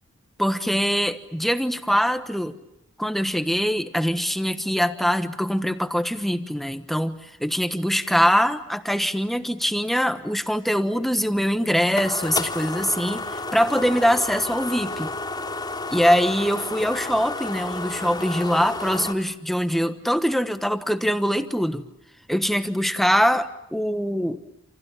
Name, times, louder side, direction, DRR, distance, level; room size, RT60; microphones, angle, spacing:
voice 1, 0.4-2.6 3.0-15.1 15.9-21.8 22.3-24.4, equal, ahead, 9 dB, 1.2 m, -23 dB
sound 1, 11.2-19.1, left 2 dB, 20° left, 2.7 m, -31 dB
28.5 x 27.5 x 7.1 m, 0.83 s
head